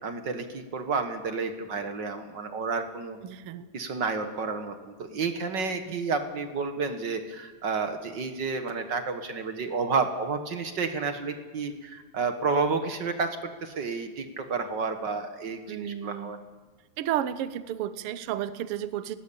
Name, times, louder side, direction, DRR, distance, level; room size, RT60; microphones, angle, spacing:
voice 1, 0.0-3.2 3.7-16.4, right 4 dB, 45° right, 8 dB, 1.6 m, -30 dB
voice 2, 3.2-3.6 5.9-6.0 15.7-16.3 17.0-19.2, right 11 dB, 65° right, 14 dB, 1.5 m, -32 dB
19.5 x 19.0 x 8.5 m, 1.3 s
omnidirectional pair, 3.5 m